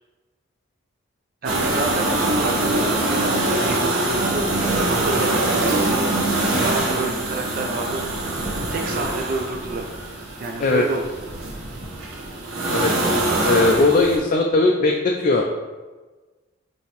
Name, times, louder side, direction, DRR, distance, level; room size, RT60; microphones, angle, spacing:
voice 1, 1.4-4.5 4.9-5.8 6.6-8.4 8.7-9.8 10.4-11.0, right 3 dB, 45° right, 2 dB, 0.4 m, -29 dB
sound 1, 1.4-14.2, right 2 dB, 80° right, 0.9 m, -23 dB
voice 2, 13.4-15.5, left 3 dB, 40° left, 0 dB, 0.3 m, -18 dB
5.5 x 2.8 x 3.1 m, 1.3 s
head